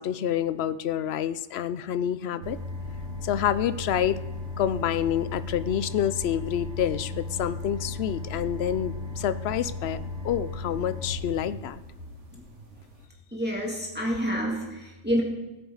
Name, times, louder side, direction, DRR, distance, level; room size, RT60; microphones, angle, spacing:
voice 1, 0.0-2.6 3.2-4.2 4.6-11.8, left 9 dB, 65° left, 15 dB, 0.7 m, -28 dB
sound 1, 2.4-13.0, left 2 dB, 65° right, 1.9 m, -36 dB
voice 2, 13.3-15.2, equal, 10° right, -4 dB, 2.5 m, -28 dB
20.0 x 9.3 x 3.9 m, 1.1 s
omnidirectional pair, 1.3 m